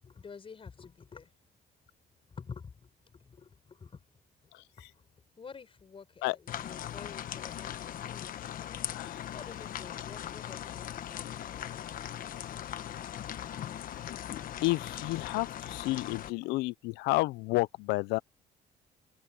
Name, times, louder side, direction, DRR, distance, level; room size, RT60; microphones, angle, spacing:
voice 1, 0.0-1.3 2.3-4.0 4.4-4.5 4.8-5.0 5.4-12.0, left 5 dB, 35° left, 5.8 m, -50 dB
sound 1, 6.5-16.3, left 11 dB, 55° left, 1.1 m, -40 dB
voice 2, 14.6-18.2, left 21 dB, 90° left, 0.5 m, -30 dB
open air
cardioid pair, 110°, 17 cm